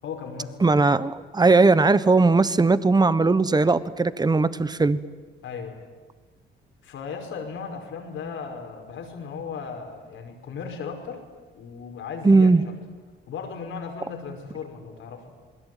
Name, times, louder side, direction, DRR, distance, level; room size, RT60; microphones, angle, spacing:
voice 1, 0.0-0.8 5.4-5.8 6.8-11.2 11.5-12.7 13.3-15.3, left 5 dB, 75° left, 4 dB, 5.2 m, -36 dB
voice 2, 0.6-5.0 12.2-12.6, right 3 dB, 20° right, 15 dB, 1.2 m, -18 dB
28.5 x 21.0 x 9.3 m, 1.4 s
cardioid pair, 90°, 20 cm